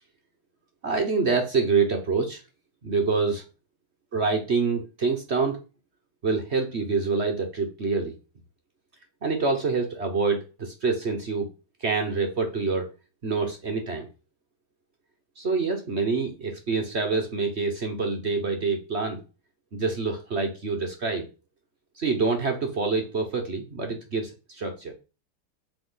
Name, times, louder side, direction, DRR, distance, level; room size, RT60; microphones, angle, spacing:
voice 1, 0.8-2.4 2.8-3.4 4.1-5.6 6.2-8.1 9.2-11.5 11.8-12.9 13.2-14.1 15.4-19.2 19.7-21.3 22.0-24.9, right 4 dB, 45° right, 4 dB, 0.9 m, -26 dB
7.7 x 4.7 x 3.9 m, 0.32 s
omnidirectional pair, 2.4 m